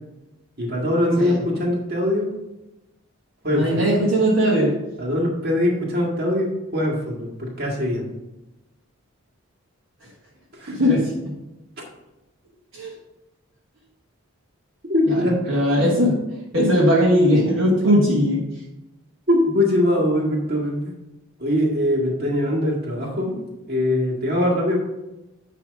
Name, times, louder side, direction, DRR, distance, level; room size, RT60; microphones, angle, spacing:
voice 1, 0.6-2.3 3.4-3.7 5.0-8.0 10.6-10.8 14.9-15.6 19.3-20.8 21.4-23.4 23.7-24.8, left 1 dB, 45° right, -3 dB, 1.9 m, -22 dB
voice 2, 3.5-4.7 10.7-11.1 12.7-12.9 15.1-15.2 15.5-16.2 16.5-18.4, equal, 60° right, -5 dB, 1.6 m, -18 dB
9.8 x 3.4 x 5.2 m, 0.97 s
head